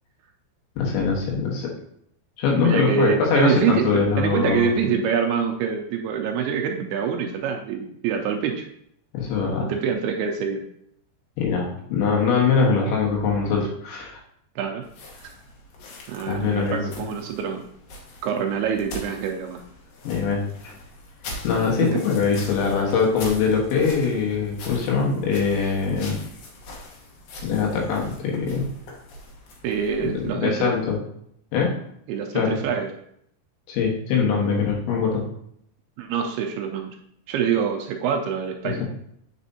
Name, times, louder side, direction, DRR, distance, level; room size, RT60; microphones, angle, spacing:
voice 1, 0.8-1.7 2.4-4.7 9.1-9.7 11.4-14.2 16.3-16.8 20.0-20.7 21.4-26.2 27.4-28.7 30.0-31.0 31.5-31.7 32.3-32.6 33.7-35.2, left 5 dB, 85° left, -1 dB, 3.8 m, -22 dB
voice 2, 2.6-8.7 9.6-10.6 14.6-14.9 15.2-15.3 16.1-17.7 18.2-19.6 21.8-22.0 29.6-30.7 32.1-32.9 36.0-36.9 37.3-38.8, right 7 dB, 85° right, 3 dB, 2.2 m, -25 dB
sound 1, 14.8-30.3, left 1 dB, 65° left, 2.7 m, -42 dB
9.0 x 5.2 x 2.8 m, 0.71 s
omnidirectional pair, 5.1 m